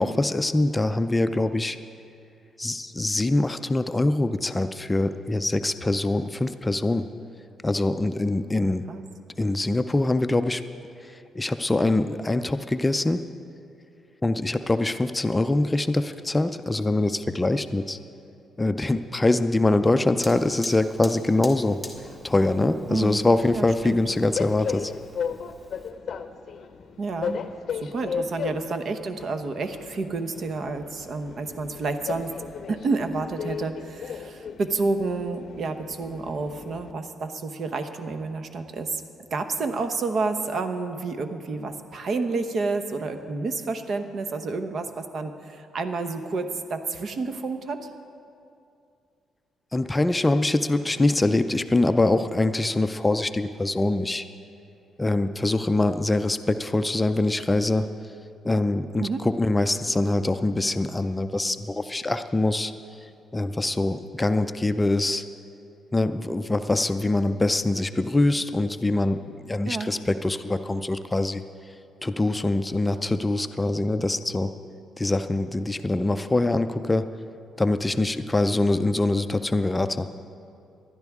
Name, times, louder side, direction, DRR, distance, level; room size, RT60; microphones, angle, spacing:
voice 1, 0.0-1.8 2.6-7.1 7.6-8.8 9.4-10.6 11.4-13.2 14.2-18.0 18.6-21.8 22.2-24.9 49.7-54.3 55.0-57.9 58.4-62.7 63.3-65.2 65.9-71.4 72.0-74.5 75.0-77.1 77.6-80.1, left 2 dB, 15° left, 9 dB, 0.4 m, -24 dB
voice 2, 8.6-9.0 22.9-23.2 23.5-24.0 27.0-27.4 27.7-32.4 32.7-39.0 39.3-47.8 59.0-59.2 69.6-69.9, right 3 dB, 55° right, 8 dB, 0.9 m, -29 dB
Fire, 20.2-25.9, left 1 dB, 10° right, 1.6 m, -45 dB
Train, 23.0-36.9, left 6 dB, 55° left, 0.6 m, -36 dB
19.0 x 11.5 x 3.6 m, 2.5 s
cardioid pair, 90°, 0 cm